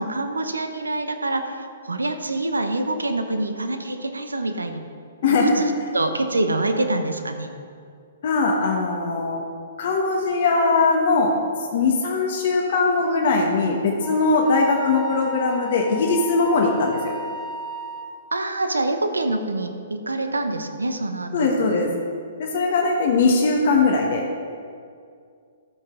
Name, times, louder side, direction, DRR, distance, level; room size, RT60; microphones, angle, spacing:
voice 1, 0.0-4.8 5.2-7.5 18.3-21.9, right 2 dB, 85° right, 7 dB, 0.9 m, -26 dB
voice 2, 5.2-5.5 8.2-9.4 9.8-11.3 11.7-17.1 21.3-21.9 22.4-24.2, left 3 dB, 55° left, 0 dB, 1.2 m, -20 dB
Wind instrument woodwind instrument, 14.0-18.2, right 1 dB, ahead, 1.2 m, -35 dB
13.0 x 6.6 x 3.7 m, 2.2 s
figure-of-eight pair, 120°, 0 cm